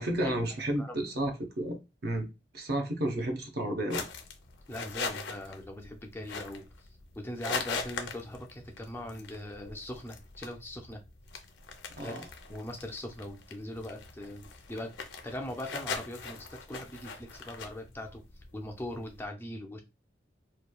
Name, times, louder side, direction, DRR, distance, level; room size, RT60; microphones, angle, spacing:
voice 1, 0.0-2.3 2.5-4.0 11.9-12.2, right 1 dB, 55° right, 0.6 m, -32 dB
sound 1, 3.9-19.3, left 4 dB, 70° left, 0.5 m, -41 dB
voice 2, 4.7-6.9 7.2-11.0 12.0-12.2 12.5-14.9 15.2-18.2 18.5-19.8, left 1 dB, 10° left, 0.3 m, -41 dB
2.9 x 2.2 x 2.2 m
head